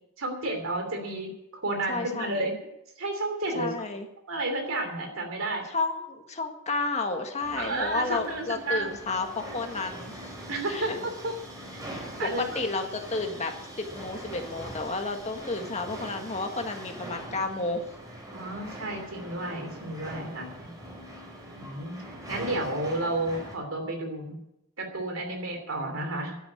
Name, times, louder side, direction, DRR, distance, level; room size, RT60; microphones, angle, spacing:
voice 1, 0.2-1.3 1.6-2.6 3.0-3.8 4.3-5.6 7.6-8.9 10.5-11.3 12.2-12.6 18.3-20.8 21.6-22.0 22.3-24.4 24.8-26.3, right 2 dB, 75° right, 3 dB, 3.1 m, -31 dB
voice 2, 1.9-2.5 3.5-4.1 5.7-10.3 10.7-11.0 11.9-13.5 13.8-17.8 18.4-18.6, left 3 dB, 35° left, 4 dB, 1.7 m, -32 dB
sound 1, 7.4-23.5, right 1 dB, 20° right, 3.8 m, -42 dB
11.5 x 9.5 x 8.7 m, 0.85 s
head